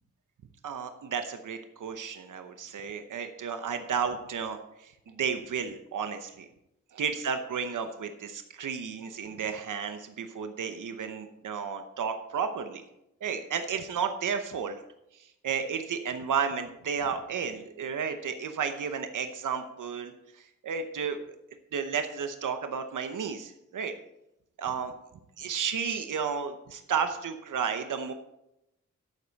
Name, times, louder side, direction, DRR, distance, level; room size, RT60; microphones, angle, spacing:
voice 1, 0.6-6.5 6.9-12.8 13.2-14.8 15.4-20.1 20.6-21.4 21.7-23.9 24.6-24.9 25.4-28.1, right 6 dB, 85° right, 7 dB, 0.9 m, -32 dB
12.0 x 8.4 x 4.1 m, 0.85 s
wide cardioid pair, 160°, 30 cm